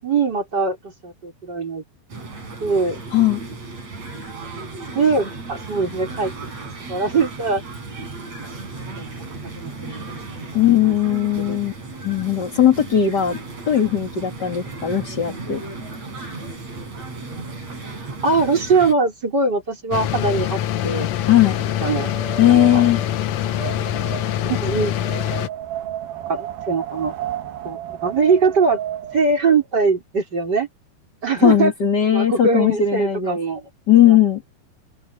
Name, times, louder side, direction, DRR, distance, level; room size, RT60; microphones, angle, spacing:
voice 1, 0.0-1.8 2.6-3.0 4.9-6.3 6.9-7.6 8.2-8.5 9.0-9.1 9.4-10.1 10.8-11.0 11.4-11.6 18.2-21.1 21.8-22.1 22.4-22.8 24.4-24.9 26.3-27.2 27.6-28.8 29.1-30.7 31.2-31.7 32.1-33.6 34.1-34.2, right 4 dB, 25° right, 5.2 m, -21 dB
sound 1, 2.1-18.9, right 3 dB, 45° right, 6.4 m, -35 dB
voice 2, 10.5-11.7 12.0-13.4 13.7-15.6 21.3-21.6 22.4-23.0 31.4-33.4 33.9-34.4, left 10 dB, 30° left, 2.3 m, -17 dB
sound 2, 19.9-25.5, left 11 dB, 75° left, 1.5 m, -24 dB
Wind, 20.5-29.7, right 10 dB, 70° right, 3.6 m, -34 dB
open air
omnidirectional pair, 4.5 m